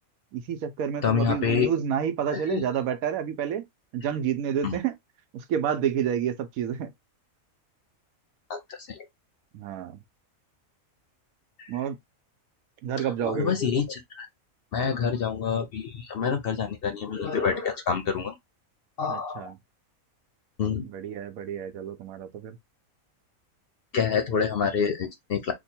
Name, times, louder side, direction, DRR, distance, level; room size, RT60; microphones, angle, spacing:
voice 1, 0.3-3.6 3.9-5.0 5.3-6.9 9.5-10.0 11.7-12.0 12.8-13.6 19.1-19.6 20.8-22.6, right 8 dB, 85° right, 1.1 m, -29 dB
voice 2, 1.0-1.7 2.3-2.6 4.6-4.8 8.5-8.6 13.2-14.3 14.7-18.3 19.0-19.5 20.6-20.9 23.9-25.5, left 6 dB, 60° left, 0.7 m, -27 dB
3.0 x 2.2 x 4.2 m
omnidirectional pair, 1.4 m